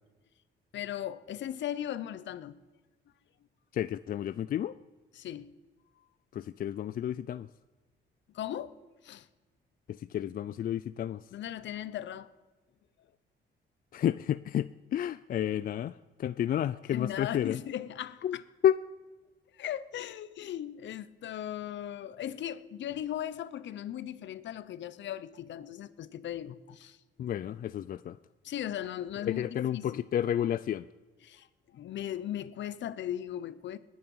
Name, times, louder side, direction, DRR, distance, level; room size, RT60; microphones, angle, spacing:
voice 1, 0.7-2.6 5.1-5.6 8.3-8.7 9.0-9.3 11.3-12.3 16.9-18.4 19.5-27.0 28.4-30.0 31.2-31.5 31.7-33.8, left 11 dB, 65° left, 0.7 m, -38 dB
voice 2, 3.7-4.8 6.3-7.5 9.9-11.2 13.9-15.9 16.2-17.6 18.2-18.4 18.6-18.8 27.2-28.2 29.3-30.9, left 10 dB, 45° left, 0.4 m, -31 dB
20.5 x 8.8 x 5.5 m
cardioid pair, 90°, 20 cm